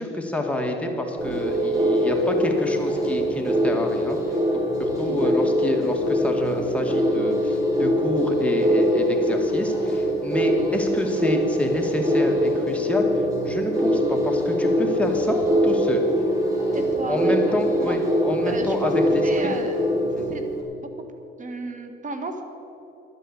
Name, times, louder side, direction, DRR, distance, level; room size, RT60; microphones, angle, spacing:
voice 1, 0.0-4.2 4.8-13.1 13.4-16.0 17.1-19.5 20.2-20.3, left 1 dB, 5° left, 1 dB, 2.1 m, -28 dB
sound 1, 1.2-20.6, equal, 15° right, 3.7 m, -23 dB
voice 2, 5.0-5.6 16.7-18.0 18.4-18.9 19.2-19.9 20.3-20.5 21.4-22.4, right 3 dB, 40° right, 6 dB, 1.8 m, -33 dB
11.5 x 9.3 x 8.3 m, 3.0 s
cardioid pair, 90°, 20 cm